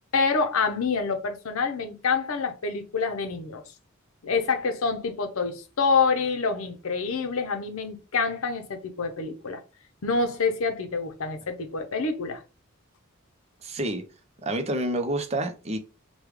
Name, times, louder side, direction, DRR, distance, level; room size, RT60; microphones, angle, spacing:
voice 1, 0.1-3.6 4.2-9.6 10.0-12.4, left 4 dB, 75° left, 0.7 m, -27 dB
voice 2, 13.6-14.0 14.4-15.8, right 1 dB, 30° right, 0.5 m, -28 dB
3.2 x 2.2 x 3.4 m
head